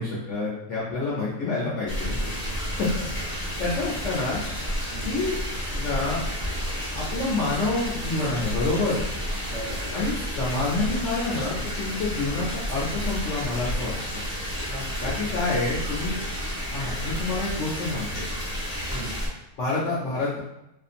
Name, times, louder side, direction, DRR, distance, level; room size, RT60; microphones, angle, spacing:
voice 1, 0.0-2.2 2.7-2.9 3.6-4.4 5.0-5.3 5.7-6.2 6.9-9.0 9.9-14.2 15.0-16.2 16.7-18.2 19.6-20.4, left 3 dB, 65° left, -6 dB, 0.7 m, -28 dB
voice 2, 1.0-1.5 2.1-2.8 4.9-5.2 9.5-10.0 12.3-12.5 14.6-15.3 18.9-19.2, right 1 dB, 55° right, -7 dB, 1.1 m, -40 dB
sound 1, 1.9-19.3, equal, 20° left, 0.7 m, -31 dB
2.7 x 2.5 x 2.4 m, 0.88 s
omnidirectional pair, 1.7 m